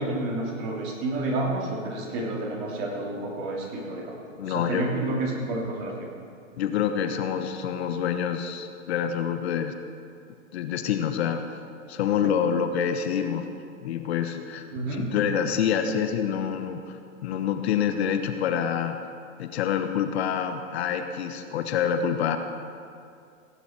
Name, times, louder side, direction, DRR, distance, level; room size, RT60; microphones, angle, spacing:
voice 1, 0.0-4.2 4.4-5.9 14.7-15.0, right 2 dB, 40° right, -2 dB, 3.3 m, -30 dB
voice 2, 4.4-4.9 6.6-9.7 10.5-11.4 11.9-13.5 13.8-19.0 19.4-22.4, left 8 dB, 50° left, 7 dB, 1.0 m, -27 dB
17.5 x 9.6 x 4.7 m, 2.4 s
hypercardioid pair, 120°, 40 cm